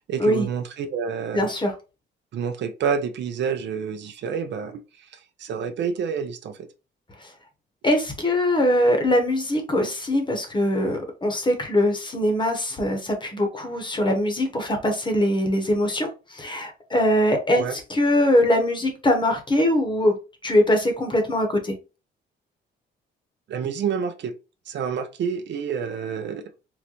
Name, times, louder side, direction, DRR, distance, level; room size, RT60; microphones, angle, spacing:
voice 1, 0.1-1.5 2.3-4.8 5.1-6.7 17.5-17.8 23.5-24.3 24.7-26.4, right 7 dB, 65° right, 7 dB, 0.5 m, -28 dB
voice 2, 1.3-1.7 7.2-7.3 7.8-20.2 20.4-21.7, left 1 dB, 25° left, 5 dB, 1.0 m, -22 dB
3.9 x 2.1 x 2.9 m, 0.30 s
cardioid pair, 90°, 20 cm